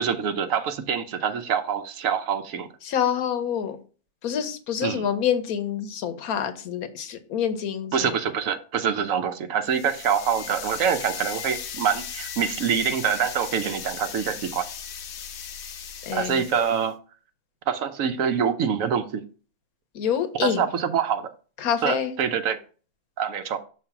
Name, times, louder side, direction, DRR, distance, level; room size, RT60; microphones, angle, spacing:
voice 1, 0.0-2.7 4.8-5.1 7.9-14.7 16.1-17.0 17.7-19.2 20.4-21.3 21.8-22.6 23.2-23.6, right 7 dB, 70° right, 1.1 m, -25 dB
voice 2, 2.8-3.8 4.2-8.1 16.0-16.5 19.9-20.7 21.6-22.1, left 8 dB, 80° left, 1.2 m, -27 dB
sound 1, 9.7-16.9, left 8 dB, 60° left, 0.8 m, -37 dB
6.2 x 3.3 x 5.8 m
omnidirectional pair, 1.5 m